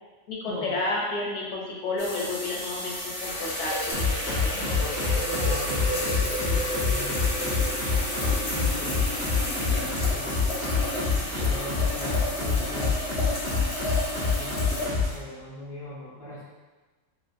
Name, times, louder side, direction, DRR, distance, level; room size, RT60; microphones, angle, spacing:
voice 1, 0.3-5.1, left 2 dB, 70° left, -3 dB, 0.9 m, -31 dB
sound 1, 2.0-14.9, left 1 dB, 40° left, 0.5 m, -31 dB
sound 2, 3.9-15.2, left 4 dB, 55° right, 1.0 m, -27 dB
voice 2, 5.1-7.6 8.4-9.1 9.8-10.5 11.2-13.0 14.0-16.4, left 1 dB, 15° right, -9 dB, 0.5 m, -40 dB
3.2 x 2.1 x 2.5 m, 1.2 s
omnidirectional pair, 1.4 m